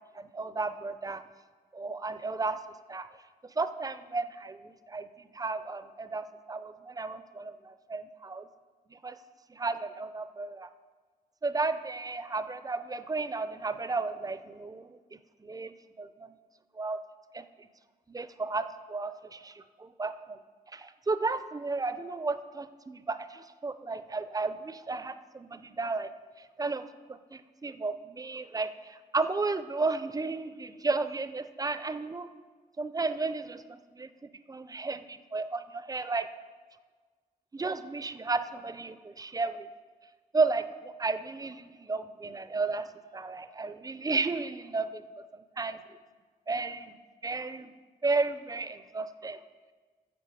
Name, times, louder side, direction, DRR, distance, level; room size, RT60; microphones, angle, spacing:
voice 1, 0.1-1.2 1.7-2.6 2.9-3.1 3.6-8.5 8.9-9.1 9.5-10.7 11.4-15.0 15.4-16.3 16.8-17.0 17.3-17.4 18.1-20.4 20.7-26.1 26.6-32.3 32.8-34.1 34.5-36.3 37.5-39.7 40.3-42.9 43.1-45.0 45.6-45.8 46.5-47.0 47.2-47.7 48.0-49.4, right 3 dB, 25° right, 12 dB, 0.5 m, -33 dB
11.0 x 7.4 x 4.8 m, 1.4 s
cardioid pair, 90°, 16 cm